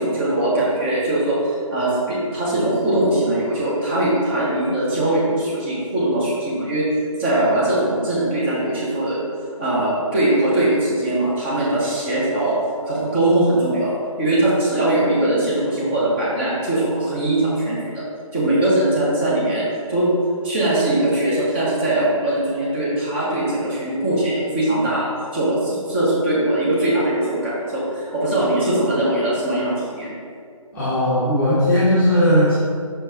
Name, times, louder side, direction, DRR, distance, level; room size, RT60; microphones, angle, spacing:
voice 1, 0.0-6.8 7.2-9.2 9.6-12.5 12.9-18.0 18.3-19.6 19.9-20.1 20.4-30.1, right 1 dB, 20° right, -8 dB, 1.3 m, -21 dB
voice 2, 30.7-32.6, equal, 10° left, -13 dB, 1.0 m, -17 dB
5.7 x 4.5 x 4.0 m, 2.3 s
figure-of-eight pair, 150°, 18 cm